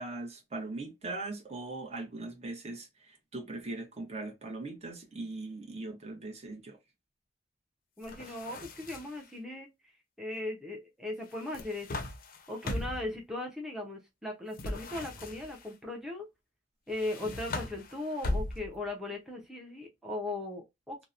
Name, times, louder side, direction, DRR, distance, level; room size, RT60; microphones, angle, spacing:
voice 1, 0.0-6.8, right 2 dB, 35° right, 0.7 m, -40 dB
sound 1, 8.0-9.3 11.3-13.1 14.5-15.7 16.9-18.9, left 2 dB, 50° left, 0.5 m, -38 dB
voice 2, 8.0-9.9 10.2-11.9 12.5-16.3 16.9-21.0, left 2 dB, ahead, 0.5 m, -38 dB
2.8 x 2.0 x 2.3 m
head